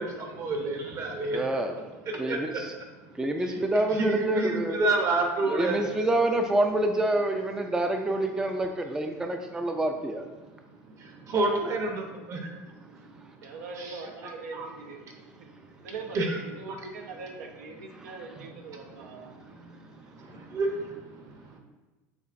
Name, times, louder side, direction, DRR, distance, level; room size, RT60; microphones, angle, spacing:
voice 1, 0.0-1.4 2.1-2.4 3.9-5.9 10.9-13.2 13.8-14.7 15.4-15.5 16.1-16.4 18.9-21.6, right 2 dB, 40° right, 2 dB, 0.8 m, -30 dB
voice 2, 1.3-1.8 2.2-2.7 3.1-4.8 5.5-10.2, right 1 dB, 10° right, 5 dB, 0.3 m, -27 dB
voice 3, 13.4-15.1 15.8-19.3, right 3 dB, 90° right, 3 dB, 0.5 m, -42 dB
6.7 x 2.4 x 2.5 m, 1.2 s
supercardioid pair, 100°, 8 cm